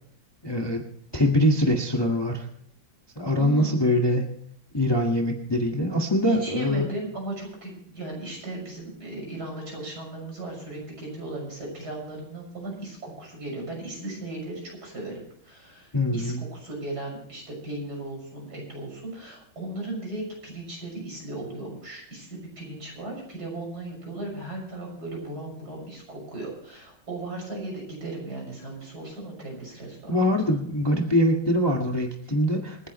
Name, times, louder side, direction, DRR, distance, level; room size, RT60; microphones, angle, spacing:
voice 1, 0.4-0.8 1.1-2.5 3.1-4.3 4.7-6.9 15.9-16.4 30.1-32.9, left 1 dB, 15° left, 1 dB, 1.7 m, -23 dB
voice 2, 3.4-3.8 6.3-30.3, right 2 dB, 50° right, -1 dB, 6.9 m, -36 dB
28.0 x 9.9 x 3.2 m, 0.70 s
omnidirectional pair, 2.2 m